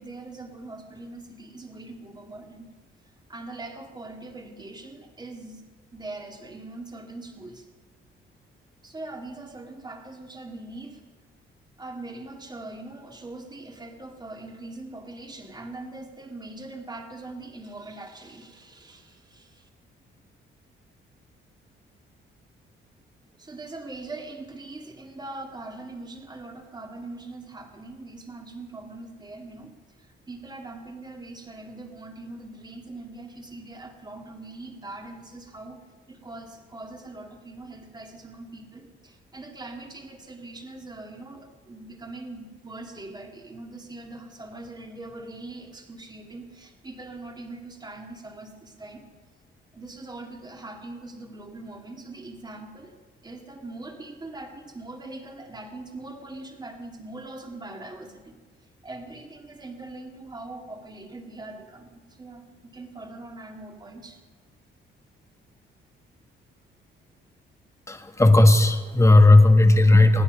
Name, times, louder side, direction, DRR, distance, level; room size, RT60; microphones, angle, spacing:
voice 1, 0.0-2.7 3.3-5.6 5.9-7.7 8.8-11.0 11.8-19.7 23.4-35.8 36.1-49.1 49.7-53.0 53.2-58.4 58.8-62.4 62.7-64.2, right 2 dB, 20° right, 3 dB, 2.2 m, -41 dB
voice 2, 67.9-70.2, left 2 dB, 15° left, 6 dB, 1.6 m, -15 dB
24.5 x 10.0 x 5.3 m, 1.4 s
cardioid pair, 90°, 20 cm